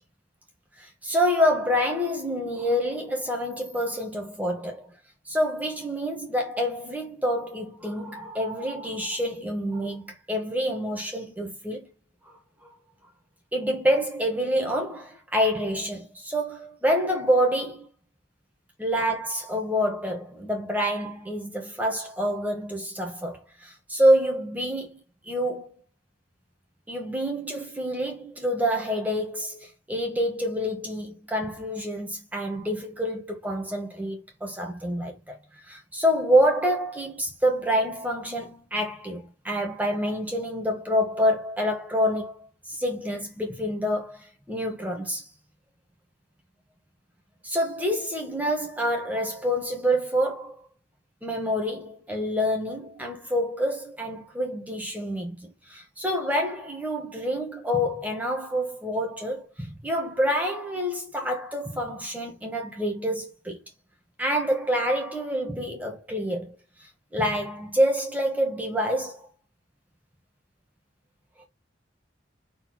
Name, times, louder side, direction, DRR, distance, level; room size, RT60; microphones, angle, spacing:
voice 1, 0.8-4.9 5.2-11.9 12.3-12.4 13.5-17.9 18.8-25.0 25.2-25.7 26.9-35.4 35.7-45.3 47.4-50.6 51.2-63.6 64.2-69.3, equal, 10° right, 1.5 m, -27 dB
5.5 x 4.3 x 4.3 m
head